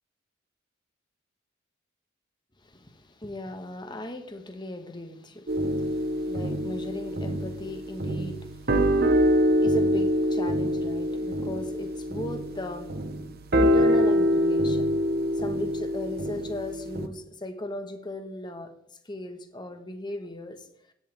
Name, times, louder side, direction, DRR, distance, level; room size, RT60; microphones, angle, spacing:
voice 1, 2.6-13.0 13.5-14.9 15.3-18.7 19.0-20.7, left 1 dB, 20° left, 1.5 m, -37 dB
sound 1, 5.5-17.1, equal, 50° right, 1.0 m, -25 dB
16.5 x 11.0 x 3.6 m
head